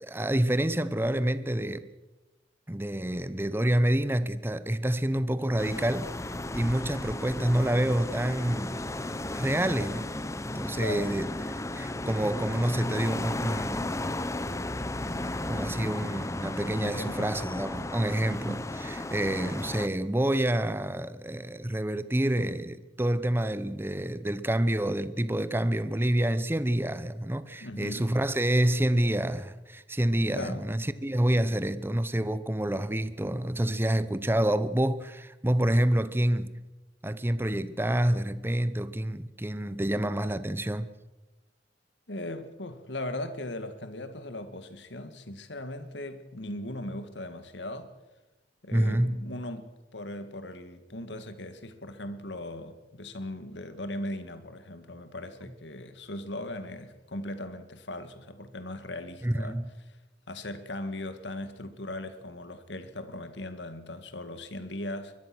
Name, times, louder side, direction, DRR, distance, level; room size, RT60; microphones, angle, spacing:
voice 1, 0.0-1.9 2.7-6.1 6.5-8.8 9.3-10.1 10.5-11.4 11.7-14.1 15.5-36.6 37.0-40.9 48.7-49.2 59.2-59.7, right 1 dB, 10° right, 0.8 m, -28 dB
sound 1, 5.6-19.9, left 2 dB, 15° left, 0.8 m, -34 dB
voice 2, 10.8-11.2 16.8-17.3 18.3-18.7 27.6-28.1 30.3-30.7 42.1-47.9 48.6-59.6 60.3-65.1, left 1 dB, 70° left, 2.0 m, -38 dB
23.5 x 22.0 x 6.2 m
head